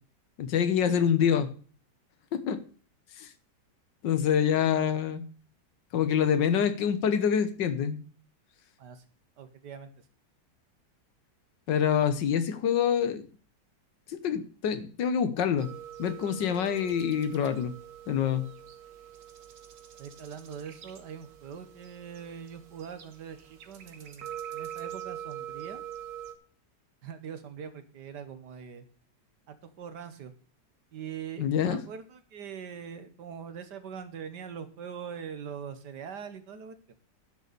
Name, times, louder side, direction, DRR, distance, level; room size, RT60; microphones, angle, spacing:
voice 1, 0.4-1.5 2.3-2.6 3.2-3.3 4.0-5.2 5.9-8.0 11.7-13.3 14.1-15.7 16.0-17.7 18.1-18.4 31.4-31.8, left 8 dB, 85° left, 12 dB, 1.7 m, -26 dB
voice 2, 9.4-9.9 20.0-25.8 27.0-28.9 29.5-30.3 30.9-36.8, right 7 dB, 75° right, 10 dB, 1.8 m, -42 dB
sound 1, 15.6-26.3, right 11 dB, 90° right, 1.9 m, -44 dB
10.5 x 6.6 x 6.8 m, 0.41 s
omnidirectional pair, 1.9 m